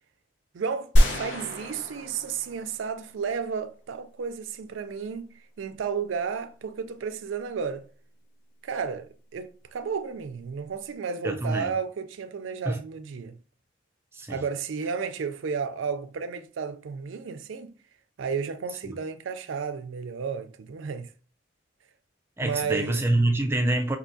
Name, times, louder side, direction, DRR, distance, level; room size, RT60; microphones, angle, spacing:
voice 1, 0.5-7.8 8.6-9.1 9.3-13.4 14.3-17.7 18.2-21.1 22.4-23.0, right 6 dB, 75° right, 0.4 m, -32 dB
sound 1, 1.0-3.2, equal, 65° left, 0.9 m, -24 dB
voice 2, 11.2-11.7 12.7-12.8 14.1-14.4 18.8-19.0 22.4-24.0, right 2 dB, 10° right, 0.4 m, -26 dB
5.4 x 2.7 x 2.6 m
head